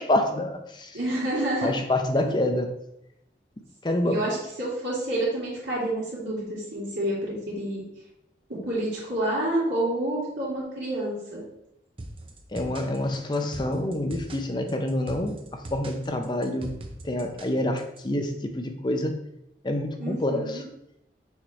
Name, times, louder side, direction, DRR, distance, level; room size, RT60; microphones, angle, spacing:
voice 1, 0.0-1.0 1.6-2.7 3.8-4.2 12.5-15.4 15.7-16.7 17.0-19.2 19.6-20.6, left 1 dB, 25° left, 5 dB, 0.5 m, -27 dB
voice 2, 0.9-1.7 2.2-2.3 4.0-7.8 8.5-11.4 20.0-20.6, right 1 dB, 85° right, -11 dB, 2.3 m, -29 dB
sound 1, 12.0-18.0, right 1 dB, 30° right, 0.7 m, -41 dB
6.4 x 4.7 x 3.2 m, 0.79 s
head